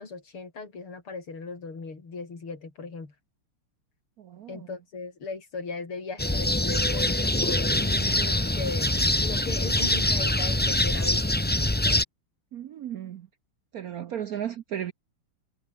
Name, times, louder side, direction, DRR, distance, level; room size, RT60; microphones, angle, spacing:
voice 1, 0.0-3.1 4.5-11.4, left 4 dB, 85° left, 5.3 m, -38 dB
sound 1, 6.2-12.0, left 1 dB, 10° left, 0.5 m, -24 dB
voice 2, 12.5-13.2 13.7-14.9, right 10 dB, 65° right, 0.9 m, -34 dB
omnidirectional pair, 2.3 m